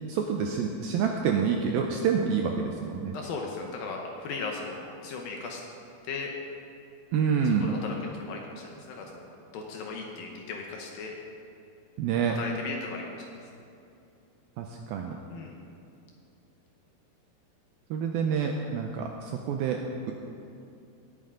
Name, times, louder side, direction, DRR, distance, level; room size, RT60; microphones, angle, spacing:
voice 1, 0.1-3.1 7.1-7.7 12.0-12.4 14.6-15.2 17.9-19.8, right 6 dB, 85° right, 2 dB, 2.2 m, -27 dB
voice 2, 3.1-5.6 6.1-6.3 7.6-9.1 9.5-11.2 12.4-13.2 15.3-15.6, left 4 dB, 70° left, 1 dB, 2.4 m, -37 dB
18.5 x 9.1 x 3.8 m, 2.6 s
omnidirectional pair, 4.9 m